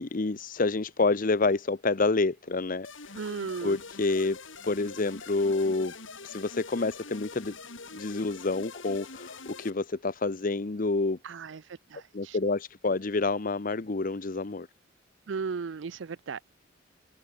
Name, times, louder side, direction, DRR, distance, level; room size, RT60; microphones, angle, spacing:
voice 1, 0.0-3.2 3.6-4.4 4.6-5.9 6.2-7.6 7.9-11.2 12.1-14.7, left 3 dB, 45° left, 0.8 m, -28 dB
sound 1, 2.8-9.7, left 4 dB, 80° left, 6.0 m, -44 dB
voice 2, 3.1-3.8 11.2-12.4 15.3-16.4, right 5 dB, 65° right, 0.5 m, -36 dB
head